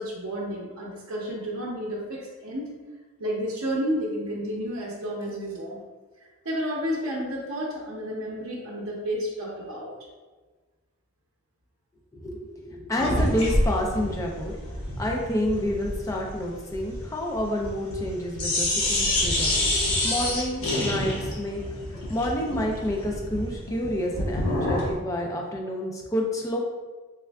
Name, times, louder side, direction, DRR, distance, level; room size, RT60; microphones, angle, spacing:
voice 1, 0.0-2.7 3.2-5.8 6.4-9.9, equal, 85° right, -4 dB, 0.6 m, -31 dB
voice 2, 12.1-14.6 15.0-19.6 20.0-21.6 21.9-26.6, left 1 dB, 15° left, 0 dB, 0.4 m, -29 dB
sound 1, 13.0-18.1 18.4-24.9, left 1 dB, 85° left, 1.0 m, -27 dB
3.5 x 3.3 x 2.2 m, 1.3 s
head